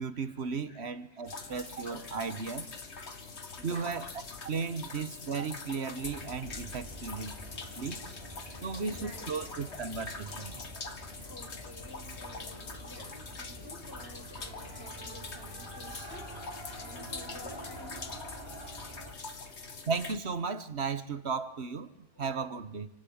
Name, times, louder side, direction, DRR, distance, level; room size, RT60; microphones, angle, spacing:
voice 1, 0.0-2.7 3.6-4.1 4.4-7.3 7.8-8.0 8.6-10.7 19.8-22.9, right 5 dB, 75° right, 13 dB, 1.6 m, -35 dB
voice 2, 0.7-2.5 2.9-4.0 4.7-4.8 6.9-10.7 11.2-19.2 22.1-22.4, left 1 dB, 65° left, 3 dB, 5.9 m, -53 dB
sound 1, 1.3-20.2, left 4 dB, 85° left, 2.1 m, -44 dB
sound 2, 6.0-19.1, right 1 dB, 25° right, 3.4 m, -47 dB
28.0 x 18.0 x 8.8 m, 0.87 s
omnidirectional pair, 1.1 m